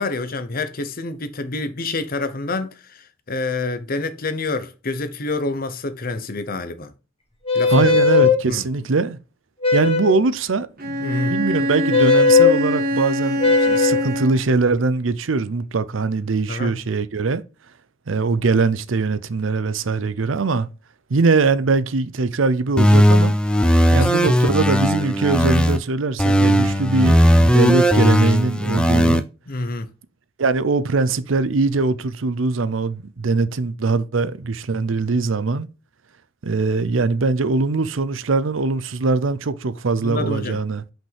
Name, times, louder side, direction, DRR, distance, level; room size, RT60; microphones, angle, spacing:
voice 1, 0.0-6.9 7.5-7.9 8.5-8.6 11.0-11.4 16.5-16.7 23.9-24.2 29.5-29.9 40.0-40.6, left 3 dB, 45° left, 0.8 m, -27 dB
sound 1, 7.5-8.4 9.6-10.2 11.9-12.6 13.4-14.0, left 4 dB, 30° left, 1.5 m, -16 dB
voice 2, 7.7-9.2 9.7-11.0 11.3-17.4 18.1-20.7 21.1-23.3 23.9-29.2 30.4-35.7 36.4-40.8, right 3 dB, 75° right, 0.6 m, -21 dB
Bowed string instrument, 10.8-14.6, equal, 50° right, 1.7 m, -24 dB
sound 2, 22.8-25.8 26.2-29.2, equal, 5° left, 0.4 m, -16 dB
5.9 x 5.4 x 3.4 m
head